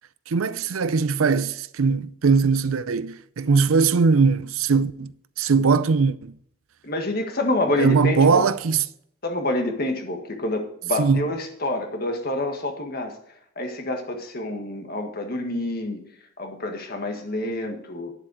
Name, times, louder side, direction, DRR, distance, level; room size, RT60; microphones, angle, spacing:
voice 1, 0.3-5.1 5.4-6.4 7.8-8.8 11.0-11.2, right 5 dB, 80° right, 0.5 m, -20 dB
voice 2, 6.8-8.5 9.2-13.2 13.5-16.0 16.4-18.1, left 1 dB, 45° left, 1.7 m, -27 dB
10.5 x 7.6 x 4.8 m
head